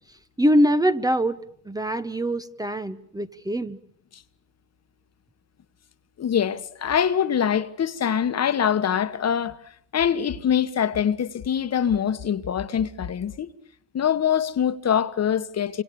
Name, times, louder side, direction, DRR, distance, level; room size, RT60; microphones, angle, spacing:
voice 1, 0.4-1.4 1.6-3.8, equal, 10° right, 1.1 m, -23 dB
voice 2, 6.2-9.6 9.9-13.5 13.9-15.8, left 8 dB, 40° left, 1.5 m, -24 dB
27.5 x 26.0 x 7.1 m
supercardioid pair, 80°, 39 cm